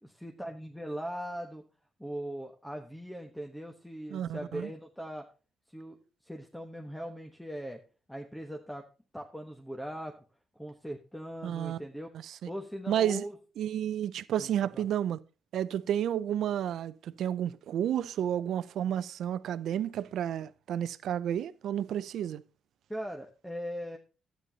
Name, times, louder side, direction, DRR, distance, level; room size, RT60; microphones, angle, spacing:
voice 1, 0.0-1.6 2.0-5.3 5.7-6.0 6.2-7.8 8.1-8.9 9.1-10.2 10.5-12.1 12.5-13.4 14.4-14.8 22.9-24.0, equal, 5° left, 1.2 m, -40 dB
voice 2, 4.1-4.7 11.4-11.8 12.9-13.2 13.6-15.2 15.5-22.4, right 10 dB, 75° right, 0.5 m, -31 dB
12.0 x 9.3 x 2.8 m
cardioid pair, 90°, 0 cm